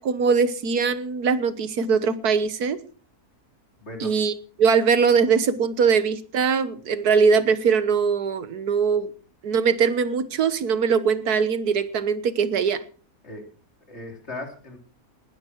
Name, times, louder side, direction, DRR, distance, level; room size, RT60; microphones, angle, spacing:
voice 1, 0.0-2.8 4.0-9.1 9.4-12.8, right 5 dB, 80° right, 1.8 m, -21 dB
voice 2, 3.8-4.1 13.2-13.5 13.9-14.8, left 2 dB, 45° left, 4.1 m, -37 dB
19.0 x 13.0 x 4.6 m
omnidirectional pair, 1.6 m